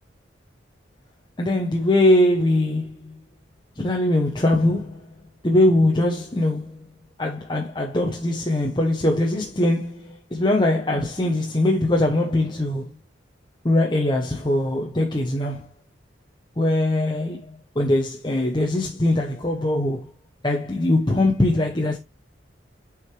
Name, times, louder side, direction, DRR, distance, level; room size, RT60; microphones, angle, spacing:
voice 1, 1.4-3.1 3.8-5.0 5.4-6.8 7.2-12.9 13.6-15.7 16.6-20.1 20.4-22.0, left 1 dB, 25° left, 0.9 m, -21 dB
8.0 x 4.8 x 3.3 m
head